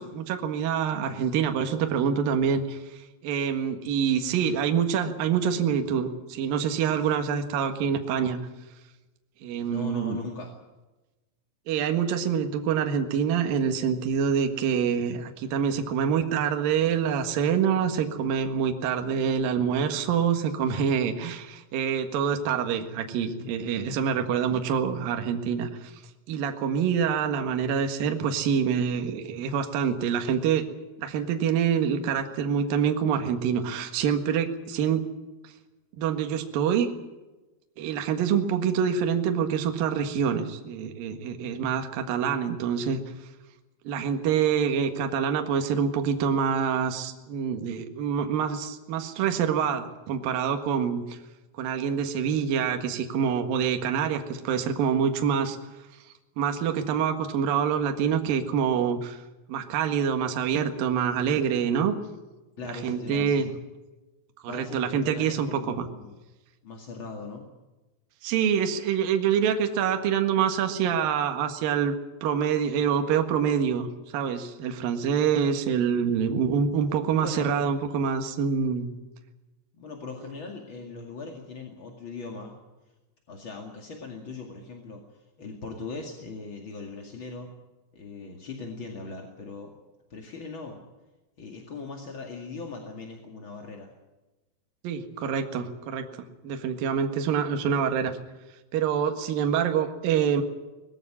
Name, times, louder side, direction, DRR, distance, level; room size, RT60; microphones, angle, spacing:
voice 1, 0.0-8.4 9.4-10.2 11.7-25.9 26.3-30.6 31.0-35.0 36.0-36.9 37.8-43.0 43.8-51.2 51.6-55.6 56.4-59.2 59.5-61.9 62.7-63.5 64.4-65.9 68.2-71.9 72.2-78.9 94.8-96.0 96.4-98.1 98.7-100.4, right 7 dB, 60° right, 5 dB, 3.0 m, -26 dB
voice 2, 9.7-10.5 62.6-63.5 64.5-66.2 66.6-67.5 77.1-77.6 79.7-82.6 83.3-87.5 87.9-89.7 90.1-90.8 91.4-93.9, left 3 dB, 40° left, 2 dB, 1.9 m, -39 dB
20.5 x 15.0 x 9.8 m, 1.1 s
omnidirectional pair, 5.3 m